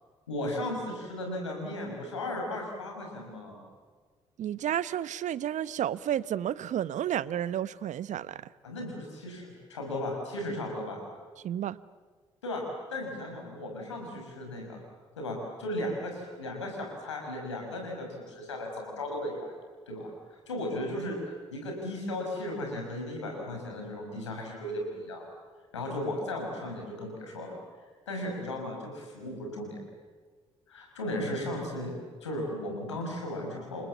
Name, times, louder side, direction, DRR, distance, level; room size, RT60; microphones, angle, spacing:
voice 1, 0.3-3.6 8.6-11.0 12.4-12.6 12.9-14.8 15.2-19.5 19.9-21.2 21.5-25.2 25.7-27.6 28.1-29.8 30.7-31.9 32.2-33.9, left 1 dB, 90° left, 2 dB, 6.0 m, -36 dB
voice 2, 4.4-8.5 11.4-11.8, right 11 dB, 55° right, 17 dB, 1.0 m, -31 dB
29.5 x 25.0 x 7.3 m, 1.5 s
hypercardioid pair, 45°, 15 cm